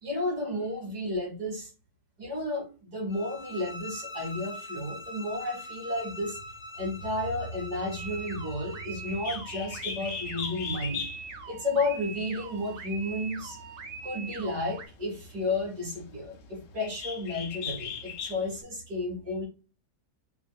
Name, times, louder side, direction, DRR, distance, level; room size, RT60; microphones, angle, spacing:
voice 1, 0.0-1.7 2.2-6.4 6.8-11.1 11.5-13.6 14.0-19.5, left 2 dB, 75° right, -2 dB, 2.9 m, -32 dB
sound 1, 3.1-9.2, left 1 dB, 45° left, 0.3 m, -43 dB
sound 2, 8.0-14.9, right 5 dB, 55° right, 0.8 m, -42 dB
Bird, 9.0-18.6, left 7 dB, 60° left, 0.9 m, -40 dB
7.0 x 2.3 x 2.4 m, 0.32 s
omnidirectional pair, 1.8 m